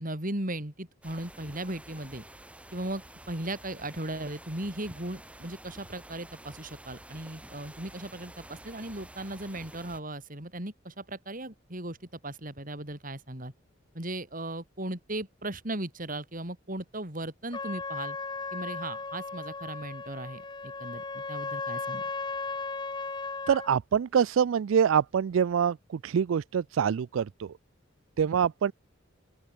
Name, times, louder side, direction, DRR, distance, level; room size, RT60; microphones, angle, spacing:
voice 1, 0.0-2.2 2.7-13.5 13.9-18.2 18.5-22.0, right 1 dB, 45° right, 5.1 m, -37 dB
sound 1, 1.0-10.0, right 1 dB, 5° right, 2.3 m, -49 dB
Trumpet, 17.5-23.7, left 4 dB, 25° left, 1.0 m, -36 dB
voice 2, 23.5-27.5 28.2-28.7, right 7 dB, 85° right, 0.4 m, -25 dB
open air
head